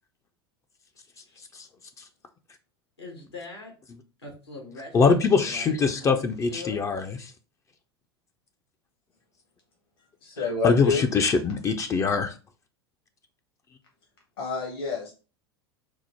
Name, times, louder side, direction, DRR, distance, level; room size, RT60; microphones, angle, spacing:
voice 1, 3.0-3.7 4.2-6.9, left 2 dB, 85° left, 2 dB, 1.5 m, -42 dB
voice 2, 4.9-7.2 10.6-12.3, left 5 dB, 25° left, 6 dB, 0.4 m, -23 dB
voice 3, 10.2-11.0 14.4-15.1, left 4 dB, 65° left, 0 dB, 1.3 m, -28 dB
4.4 x 2.0 x 4.2 m, 0.34 s
figure-of-eight pair, 85°, 13 cm